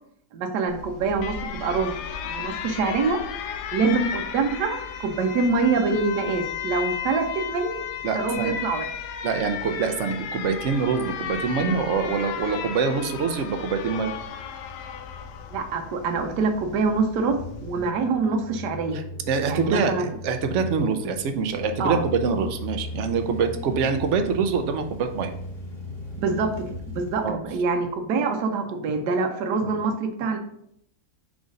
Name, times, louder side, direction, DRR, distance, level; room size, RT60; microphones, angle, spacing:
voice 1, 0.3-2.0 2.2-3.2 3.7-7.8 8.1-8.9 15.5-19.0 19.5-20.1 21.8-22.0 26.2-26.5 26.9-30.4, right 4 dB, 85° right, 4 dB, 1.3 m, -25 dB
Alarm, 0.7-17.9, left 8 dB, 85° left, 1.2 m, -35 dB
voice 2, 8.0-8.6 9.2-14.1 18.9-25.3 27.2-27.4 29.6-29.7, right 5 dB, 60° right, 7 dB, 0.8 m, -25 dB
sound 1, 14.2-28.1, left 2 dB, 30° left, 1.3 m, -38 dB
4.8 x 3.9 x 5.1 m, 0.72 s
omnidirectional pair, 1.7 m